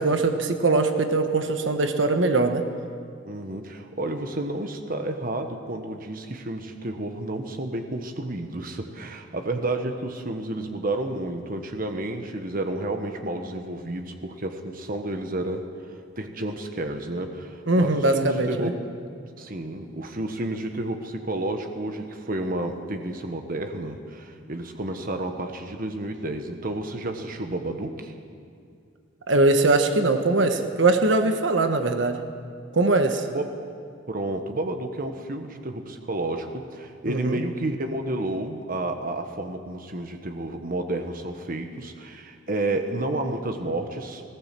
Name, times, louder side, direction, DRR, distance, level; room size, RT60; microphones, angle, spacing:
voice 1, 0.0-2.7 17.7-18.7 29.3-32.2 32.7-33.3 37.0-37.4, right 2 dB, 70° right, 6 dB, 1.2 m, -21 dB
voice 2, 3.2-15.6 16.2-18.8 19.4-28.1 33.3-33.5 34.1-44.2, right 2 dB, 45° right, 5 dB, 1.3 m, -31 dB
19.0 x 18.0 x 7.6 m, 2.3 s
head